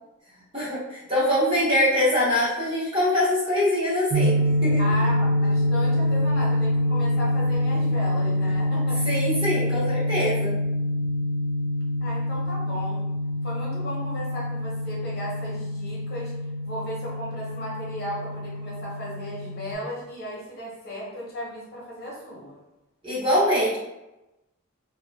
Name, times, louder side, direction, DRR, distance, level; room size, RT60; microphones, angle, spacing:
voice 1, 0.5-4.8 9.0-10.5 23.0-23.8, left 1 dB, 25° right, -10 dB, 0.9 m, -23 dB
sound 1, 4.1-19.7, left 1 dB, 55° right, 0.4 m, -25 dB
voice 2, 4.8-9.0 12.0-13.1 13.4-16.3 16.6-22.6, equal, 45° left, -6 dB, 0.9 m, -35 dB
2.9 x 2.2 x 2.5 m, 0.98 s
head